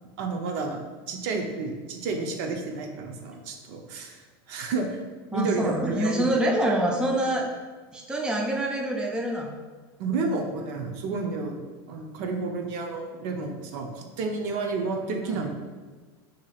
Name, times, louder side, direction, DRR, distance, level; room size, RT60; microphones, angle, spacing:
voice 1, 0.2-0.8 1.1-4.2 4.5-5.1 5.3-6.3 10.0-11.6 11.9-15.5, right 3 dB, 65° right, 3 dB, 0.6 m, -30 dB
voice 2, 5.3-7.4 7.9-9.5 15.2-15.4, right 1 dB, 5° right, 0 dB, 0.4 m, -26 dB
4.8 x 2.9 x 2.4 m, 1.4 s
supercardioid pair, 125°, 13 cm